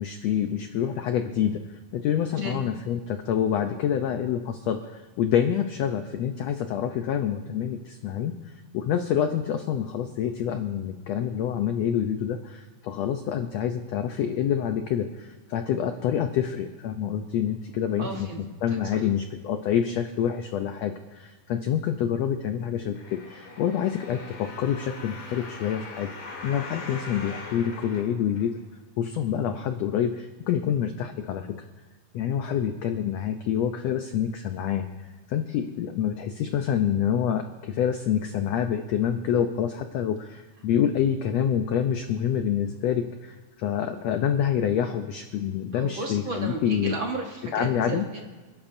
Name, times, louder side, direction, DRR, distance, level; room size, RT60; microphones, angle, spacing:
voice 1, 0.0-8.4 8.7-18.3 18.6-28.6 29.0-31.5 32.1-34.9 35.3-46.9 47.5-48.1, left 9 dB, 90° left, 7 dB, 1.4 m, -27 dB
voice 2, 18.0-18.4 18.7-19.0 45.7-48.2, right 3 dB, 60° right, 1 dB, 1.4 m, -34 dB
sound 1, 22.9-28.9 29.5-29.6, left 3 dB, 45° left, 2.6 m, -41 dB
28.0 x 11.5 x 2.7 m, 1.3 s
omnidirectional pair, 3.8 m